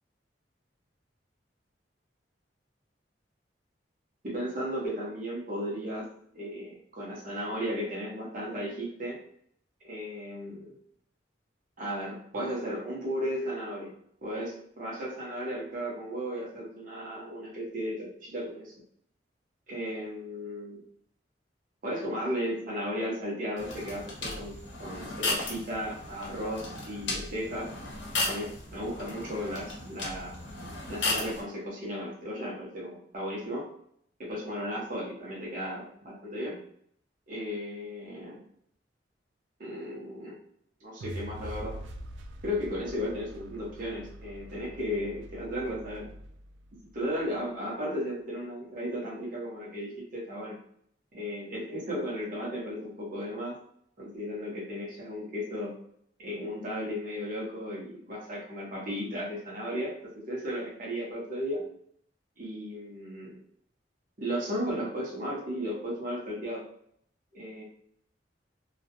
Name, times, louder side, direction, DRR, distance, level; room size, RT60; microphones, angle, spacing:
voice 1, 4.2-6.1 6.3-9.2 9.8-10.8 11.8-13.9 14.2-18.7 19.7-20.8 21.8-27.7 28.2-30.4 30.9-33.7 34.2-36.6 37.3-38.4 39.6-40.4 40.8-41.7 42.4-46.1 46.9-50.6 51.1-53.6 54.0-55.8 56.2-61.6 62.4-63.4 64.2-66.6 67.3-67.6, equal, 50° right, -5 dB, 0.8 m, -35 dB
sound 1, 23.6-31.4, left 2 dB, 75° left, 0.7 m, -35 dB
sound 2, 41.0-47.2, right 1 dB, 85° right, 0.3 m, -44 dB
2.4 x 2.1 x 2.8 m, 0.67 s
head